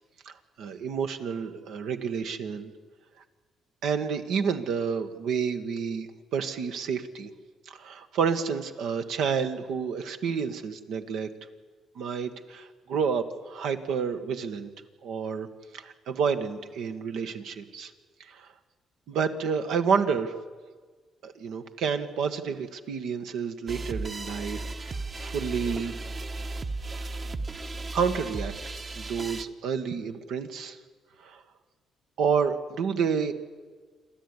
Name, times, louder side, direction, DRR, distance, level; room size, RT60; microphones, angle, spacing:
voice 1, 0.2-2.7 3.8-7.3 7.6-11.3 11.9-14.7 15.0-15.5 15.7-17.9 18.2-18.5 19.1-20.3 21.2-25.9 27.0-27.1 27.6-28.5 28.9-30.8 31.2-31.4 32.2-33.3, right 6 dB, 80° right, 7 dB, 1.7 m, -29 dB
sound 1, 23.7-29.4, right 2 dB, 35° right, 1.2 m, -35 dB
28.0 x 12.5 x 9.9 m, 1.5 s
cardioid pair, 90°, 0 cm